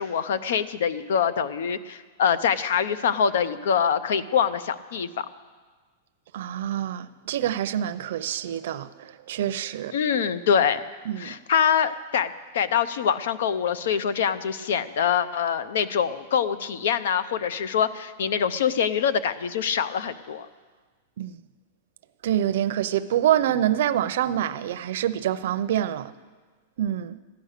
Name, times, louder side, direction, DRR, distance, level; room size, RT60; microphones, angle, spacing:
voice 1, 0.0-5.3 9.9-10.8 11.2-20.5, left 7 dB, 70° left, 0.7 m, -24 dB
voice 2, 6.3-9.9 11.1-11.3 21.2-21.4 22.2-26.1 26.8-27.2, right 11 dB, 60° right, 0.6 m, -26 dB
15.0 x 10.5 x 6.6 m
supercardioid pair, 175°, 0 cm